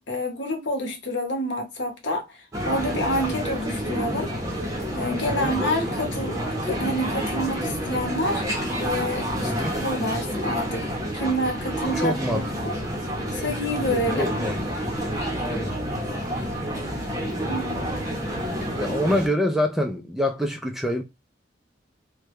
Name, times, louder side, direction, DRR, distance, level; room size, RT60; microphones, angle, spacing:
voice 1, 0.0-4.3 5.0-8.4 8.8-10.8 11.1-12.8 13.3-14.3 17.5-18.0, equal, 70° left, 1.0 m, -28 dB
sound 1, 2.5-19.3, equal, 20° right, 0.8 m, -29 dB
voice 2, 9.4-9.8 11.9-12.7 14.2-14.6 15.4-15.7 18.8-21.0, left 1 dB, ahead, 0.4 m, -26 dB
3.3 x 2.2 x 3.1 m
head